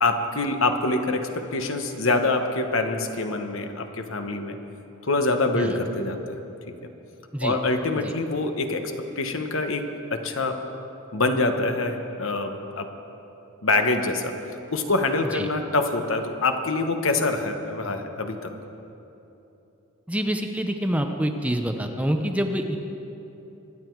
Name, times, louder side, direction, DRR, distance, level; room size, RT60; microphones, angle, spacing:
voice 1, 0.0-4.6 5.0-6.3 7.4-9.8 10.1-10.6 11.1-12.9 13.6-14.4 14.7-18.5, left 2 dB, 65° left, 6 dB, 1.1 m, -25 dB
voice 2, 20.1-22.8, equal, 5° right, 4 dB, 0.7 m, -26 dB
24.0 x 9.8 x 4.7 m, 3.0 s
head